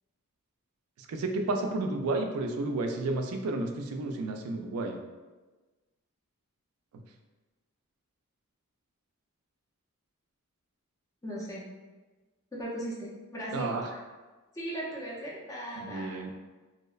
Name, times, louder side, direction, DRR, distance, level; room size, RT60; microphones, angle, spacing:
voice 1, 1.1-5.0 13.5-13.9 15.8-16.3, right 2 dB, 80° right, 4 dB, 0.3 m, -31 dB
voice 2, 11.2-11.7 12.5-14.0 14.5-16.2, right 1 dB, 15° left, -5 dB, 0.4 m, -38 dB
2.7 x 2.0 x 2.3 m, 1.2 s
head